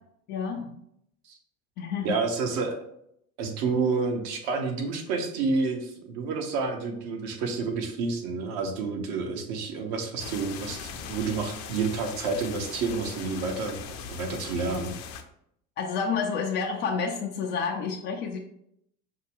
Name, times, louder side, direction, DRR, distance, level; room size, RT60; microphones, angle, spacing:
voice 1, 0.3-0.8 1.8-2.1 15.8-18.4, left 5 dB, 25° left, 0 dB, 0.3 m, -29 dB
voice 2, 2.0-2.8 3.4-14.9, right 4 dB, 50° right, 4 dB, 1.0 m, -29 dB
sound 1, 10.2-15.2, left 7 dB, 60° left, 0.6 m, -40 dB
5.5 x 2.2 x 3.6 m, 0.73 s
figure-of-eight pair, 75°, 43 cm